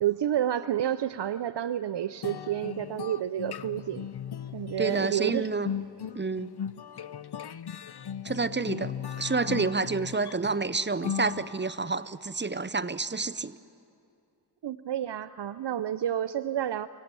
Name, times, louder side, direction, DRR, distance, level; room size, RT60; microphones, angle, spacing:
voice 1, 0.0-4.1 4.5-5.5 14.6-16.9, right 11 dB, 85° right, 13 dB, 0.5 m, -30 dB
sound 1, 2.2-11.9, left 8 dB, 70° left, 0.6 m, -38 dB
voice 2, 4.8-5.7 6.1-6.5 8.2-13.6, right 4 dB, 25° right, 14 dB, 0.6 m, -29 dB
24.5 x 17.0 x 8.9 m, 2.5 s
wide cardioid pair, 60°, 41 cm